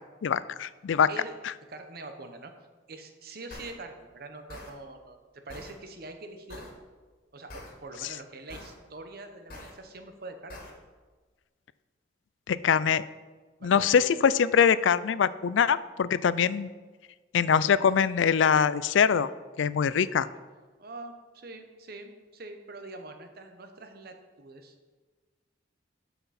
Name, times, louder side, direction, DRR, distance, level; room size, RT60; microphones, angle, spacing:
voice 1, 0.2-1.1 12.5-13.0 13.6-16.7 17.3-19.3 19.6-20.3, left 7 dB, 90° left, 17 dB, 0.4 m, -23 dB
voice 2, 1.7-2.5 2.9-6.7 7.3-10.6 13.6-13.9 20.8-24.7, right 2 dB, 55° right, 6 dB, 1.0 m, -44 dB
sound 1, 3.5-3.7 4.5-4.7 5.5-5.7 6.5-6.7 7.5-7.7 8.5-8.7 9.5-9.7 10.5-10.7, left 1 dB, 50° left, 2.0 m, -43 dB
12.5 x 5.9 x 4.3 m, 1.4 s
head